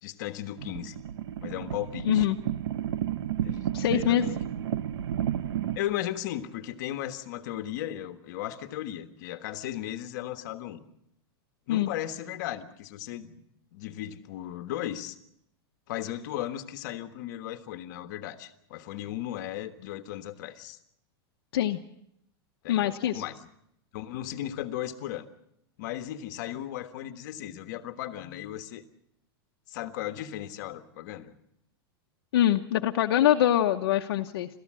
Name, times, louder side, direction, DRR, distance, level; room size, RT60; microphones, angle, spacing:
voice 1, 0.0-1.0 1.4-2.2 3.4-4.5 5.7-10.8 11.7-13.4 13.7-15.2 15.9-20.8 22.6-23.5 23.9-25.3 25.8-28.8 29.7-31.4, left 12 dB, 45° left, 8 dB, 1.4 m, -36 dB
sound 1, 0.6-5.8, right 11 dB, 80° right, 0.9 m, -32 dB
voice 2, 2.0-2.4 3.7-4.3 11.7-11.9 21.5-21.8 22.7-23.2 32.3-34.5, left 11 dB, 60° left, 3 dB, 1.0 m, -24 dB
29.5 x 14.0 x 7.6 m, 0.77 s
supercardioid pair, 180°, 13 cm